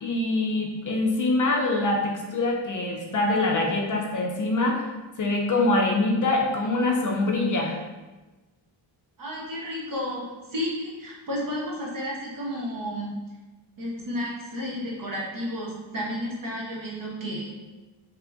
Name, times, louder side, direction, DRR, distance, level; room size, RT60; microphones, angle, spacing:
voice 1, 0.0-4.8 5.2-7.7, left 2 dB, 45° left, 0 dB, 0.5 m, -24 dB
voice 2, 9.2-13.1 13.8-17.5, equal, 45° right, -4 dB, 1.0 m, -32 dB
3.7 x 3.0 x 3.4 m, 1.2 s
wide cardioid pair, 175°, 45 cm